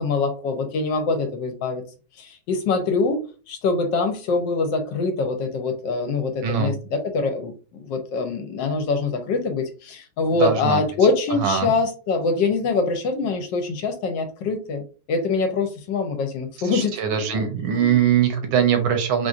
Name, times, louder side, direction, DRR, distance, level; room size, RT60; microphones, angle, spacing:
voice 1, 0.0-1.8 2.2-3.2 3.5-14.8 15.1-16.9 17.3-18.0, left 4 dB, 70° left, 6 dB, 1.3 m, -24 dB
voice 2, 10.4-10.8 11.4-11.7 16.6-19.3, right 8 dB, 80° right, 6 dB, 1.5 m, -21 dB
4.4 x 2.5 x 2.5 m, 0.35 s
omnidirectional pair, 2.2 m